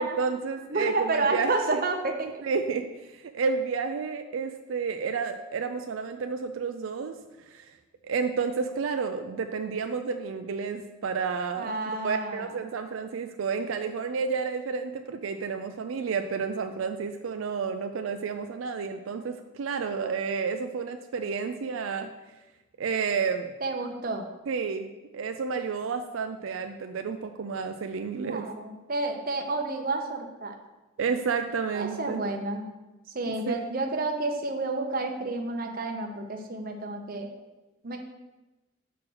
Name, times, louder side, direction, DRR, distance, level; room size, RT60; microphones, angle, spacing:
voice 1, 0.0-1.5 2.4-7.2 7.5-7.7 8.0-22.1 22.8-23.5 24.5-24.9 25.1-28.5 31.0-32.2 33.3-33.6, right 5 dB, 80° right, 7 dB, 0.4 m, -31 dB
voice 2, 0.7-2.4 11.6-12.5 23.6-24.3 28.2-30.5 31.7-32.7 33.1-37.3 37.8-38.0, right 2 dB, 45° right, 4 dB, 0.8 m, -30 dB
6.1 x 4.5 x 6.2 m, 1.1 s
head